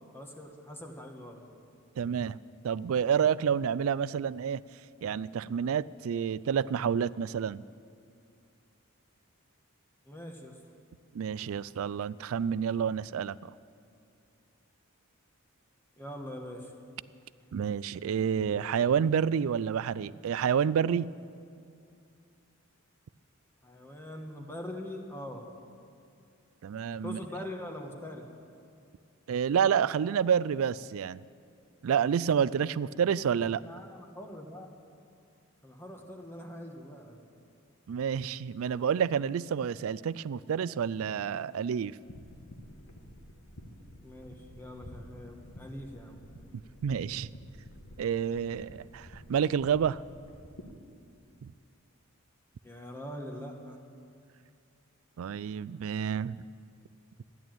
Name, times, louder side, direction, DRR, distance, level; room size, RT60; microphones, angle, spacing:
voice 1, 0.1-1.4 10.0-10.6 16.0-16.7 23.6-25.5 27.0-28.2 33.7-34.7 35.6-37.2 44.0-46.2 52.6-53.8, left 1 dB, 10° left, 2 dB, 1.3 m, -43 dB
voice 2, 2.0-2.4 2.6-4.6 5.0-7.6 11.1-13.5 17.5-21.1 26.6-27.2 29.3-31.2 31.8-33.6 37.9-42.0 46.8-47.3 48.0-50.0 51.4-51.5 55.2-56.4, right 7 dB, 70° right, 20 dB, 0.3 m, -29 dB
sound 1, 42.0-50.8, equal, 65° left, 1.6 m, -50 dB
14.0 x 11.0 x 9.0 m, 2.4 s
head